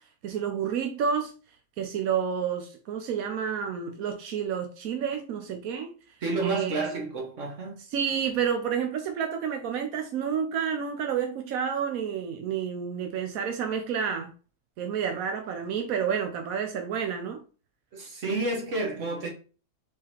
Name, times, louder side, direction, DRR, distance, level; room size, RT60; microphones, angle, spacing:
voice 1, 0.2-1.3 1.8-5.9 6.4-7.0 7.9-14.3 14.8-17.4, right 7 dB, 70° right, 0.8 m, -30 dB
voice 2, 6.2-7.8 17.9-19.3, right 2 dB, 45° right, 1.3 m, -30 dB
4.7 x 3.7 x 3.0 m
omnidirectional pair, 2.2 m